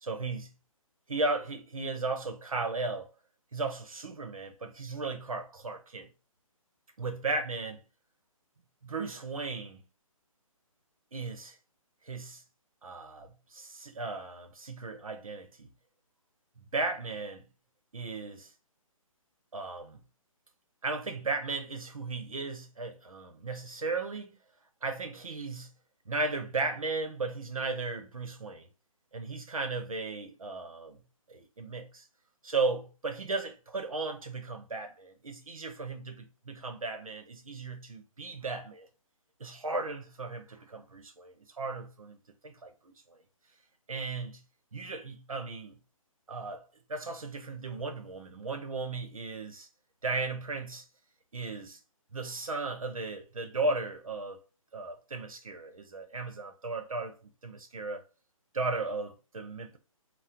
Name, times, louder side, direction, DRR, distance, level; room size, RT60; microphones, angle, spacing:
voice 1, 0.0-0.5 1.1-3.1 3.5-6.1 7.0-7.8 8.8-9.8 11.1-11.6 12.0-12.4 12.8-15.7 16.6-17.5 17.9-18.5 19.5-20.0 20.8-24.3 24.8-25.7 26.1-28.7 29.1-31.0 31.3-32.1 32.4-38.9 39.4-42.2 42.4-43.2 43.9-44.4 44.7-45.8 46.3-46.6 46.9-49.7 50.0-50.8 51.3-51.8 52.1-54.4 54.7-58.0 58.5-59.8, right 3 dB, 75° right, 1.0 m, -36 dB
4.3 x 2.3 x 3.8 m
figure-of-eight pair, 140°, 18 cm